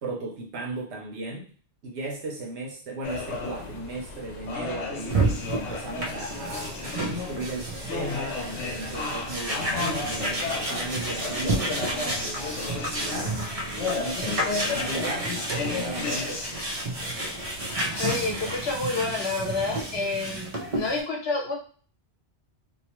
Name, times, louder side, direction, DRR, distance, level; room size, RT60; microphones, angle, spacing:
voice 1, 0.0-1.5 1.8-13.4 13.7-16.4, right 2 dB, 80° right, 0 dB, 1.0 m, -36 dB
sound 1, 3.0-18.8, left 4 dB, 85° left, 0.9 m, -34 dB
sound 2, 5.1-21.0, right 2 dB, 40° right, 0.5 m, -31 dB
voice 2, 18.0-21.5, left 3 dB, 65° left, 0 dB, 1.1 m, -29 dB
2.8 x 2.0 x 2.9 m, 0.42 s
omnidirectional pair, 1.1 m